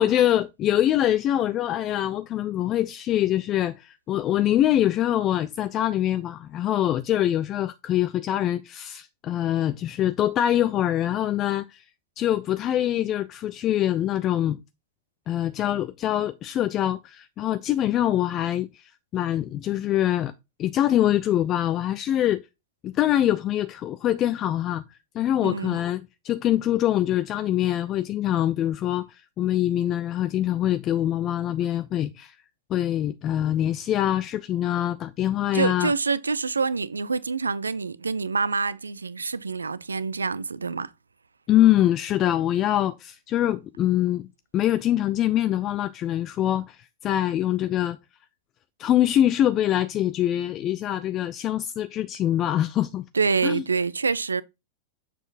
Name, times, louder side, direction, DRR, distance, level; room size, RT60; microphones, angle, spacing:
voice 1, 0.0-11.8 12.2-14.6 15.3-20.3 20.6-22.4 22.8-32.3 32.7-35.9 41.5-48.0 48.8-53.1 53.4-53.6, left 12 dB, 30° left, 0.4 m, -24 dB
voice 2, 25.4-25.8 35.5-40.9 53.1-54.4, right 4 dB, 75° right, 0.4 m, -26 dB
7.0 x 5.8 x 2.5 m
figure-of-eight pair, 90°, 0 cm